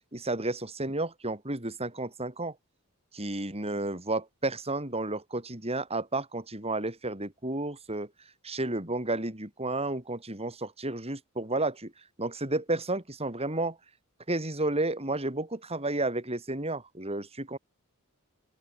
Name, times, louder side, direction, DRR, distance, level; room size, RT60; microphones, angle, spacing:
voice 1, 0.1-2.5 3.1-8.1 8.4-11.9 12.2-13.8 14.3-17.6, right 2 dB, 25° right, 5.0 m, -32 dB
open air
head